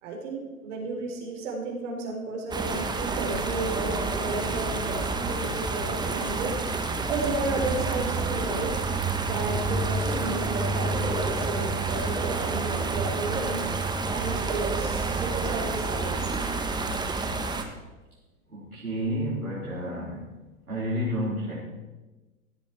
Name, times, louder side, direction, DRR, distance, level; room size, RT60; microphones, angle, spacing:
voice 1, 0.0-6.6 7.1-8.7 9.3-13.6 14.1-16.4, right 3 dB, 55° right, -1 dB, 4.4 m, -33 dB
sound 1, 2.5-17.6, right 3 dB, 10° right, 1.2 m, -29 dB
voice 2, 18.5-20.2 20.7-21.5, equal, 85° right, -10 dB, 4.6 m, -30 dB
16.5 x 12.5 x 4.6 m, 1.2 s
figure-of-eight pair, 100°, 42 cm